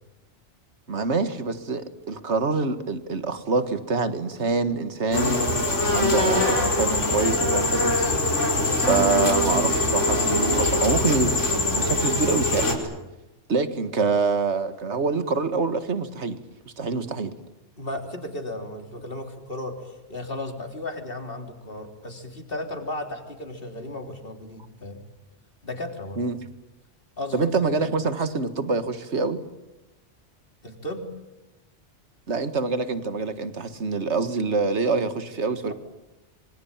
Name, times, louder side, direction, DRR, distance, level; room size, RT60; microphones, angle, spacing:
voice 1, 0.9-5.4 5.9-8.1 8.8-11.4 11.7-12.7 13.5-16.4 16.7-17.3 26.2-26.4 27.3-29.4 32.3-35.7, right 4 dB, 70° right, 10 dB, 2.0 m, -25 dB
sound 1, 5.1-12.7, left 2 dB, 85° left, 5.4 m, -23 dB
voice 2, 17.8-25.0 25.6-26.2 27.2-27.5 30.6-31.1, left 1 dB, 50° left, 4 dB, 3.9 m, -35 dB
26.5 x 24.5 x 8.9 m, 0.97 s
omnidirectional pair, 1.2 m